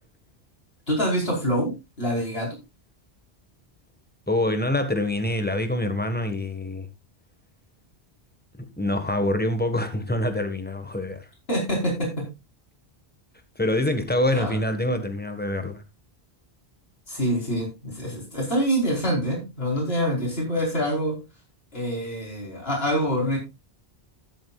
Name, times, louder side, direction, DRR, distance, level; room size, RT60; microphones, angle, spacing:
voice 1, 0.9-2.5 11.5-12.2 14.3-14.5 17.1-21.2 21.7-23.4, equal, 70° left, 5.0 m, -26 dB
voice 2, 4.3-6.9 8.6-11.3 13.5-15.8, left 1 dB, 10° left, 1.7 m, -25 dB
12.0 x 11.5 x 2.5 m
omnidirectional pair, 1.1 m